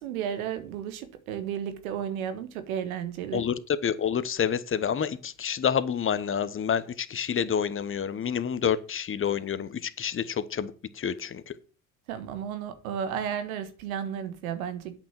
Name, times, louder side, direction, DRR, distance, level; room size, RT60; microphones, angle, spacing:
voice 1, 0.0-3.4 12.1-15.0, right 8 dB, 85° right, 1.6 m, -33 dB
voice 2, 3.8-11.5, left 8 dB, 30° left, 1.1 m, -28 dB
8.5 x 6.0 x 7.3 m
hypercardioid pair, 70°, 42 cm